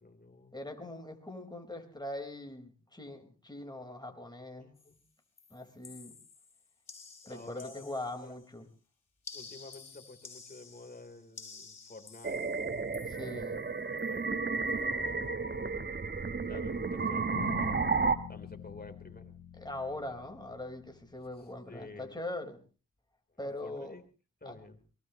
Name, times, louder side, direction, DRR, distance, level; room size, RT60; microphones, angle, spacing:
voice 1, 0.0-0.7 4.8-5.0 7.2-7.9 8.2-8.3 9.3-12.5 13.9-15.8 16.4-17.8 18.3-19.3 21.7-22.2 23.3-24.0 24.4-24.8, left 3 dB, 30° left, 5 dB, 3.6 m, -50 dB
voice 2, 0.5-4.8 5.5-6.2 7.3-8.7 13.1-13.6 19.6-22.6 23.4-24.0 24.4-24.6, left 1 dB, 10° left, 4 dB, 4.4 m, -41 dB
sound 1, 4.8-5.1 5.4-8.5 9.2-13.6 14.0-14.3 14.5-14.8, left 4 dB, 50° left, 4.6 m, -52 dB
sound 2, 12.2-18.2, right 4 dB, 30° right, 1.3 m, -32 dB
sound 3, 17.3-21.4, left 10 dB, 90° left, 1.1 m, -46 dB
23.0 x 20.5 x 3.0 m, 0.36 s
cardioid pair, 55°, 34 cm